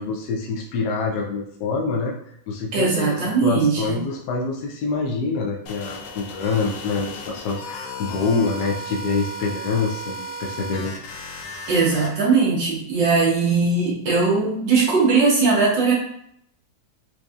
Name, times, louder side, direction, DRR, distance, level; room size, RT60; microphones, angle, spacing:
voice 1, 0.0-2.1 2.5-11.1, left 4 dB, 70° left, -1 dB, 0.9 m, -26 dB
voice 2, 2.7-3.9 11.7-15.9, right 4 dB, 75° right, -3 dB, 1.7 m, -19 dB
sound 1, 5.7-12.1, left 1 dB, 90° left, 1.4 m, -35 dB
4.5 x 2.6 x 2.4 m, 0.72 s
omnidirectional pair, 2.0 m